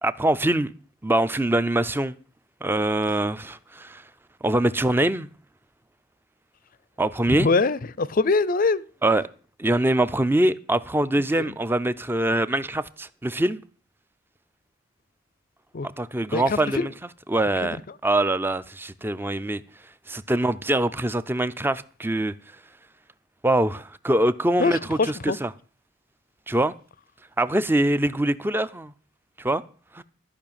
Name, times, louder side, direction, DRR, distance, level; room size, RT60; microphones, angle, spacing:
voice 1, 0.0-0.7 1.0-2.2 2.6-4.0 4.4-5.3 7.0-7.5 9.0-9.2 9.6-13.6 16.0-16.9 17.3-19.6 20.1-22.3 23.4-25.5 26.5-26.7 27.4-28.9 29.4-29.6 29.9-30.0, right 1 dB, 10° right, 0.5 m, -23 dB
voice 2, 7.3-8.8 11.4-11.5 15.7-15.9 16.3-16.9 17.6-17.8 24.6-25.4, left 3 dB, 45° left, 0.5 m, -23 dB
13.5 x 5.7 x 8.7 m
head